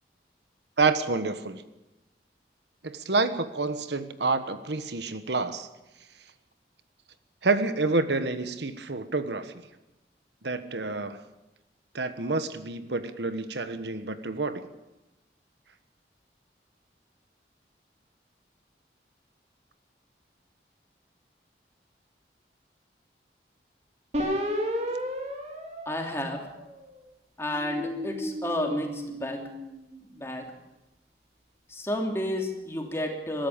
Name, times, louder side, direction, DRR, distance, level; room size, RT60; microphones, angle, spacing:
voice 1, 0.8-1.6 2.8-5.7 7.4-9.5 10.4-11.2 11.9-14.7, right 3 dB, 80° right, 10 dB, 1.3 m, -28 dB
sound 1, 24.1-26.8 27.4-29.9, equal, 40° right, 3.3 m, -33 dB
voice 2, 25.8-26.4 27.4-29.5 30.1-30.5 31.7-33.5, left 1 dB, 15° left, 2 dB, 3.0 m, -31 dB
23.0 x 13.0 x 8.7 m, 1.0 s
head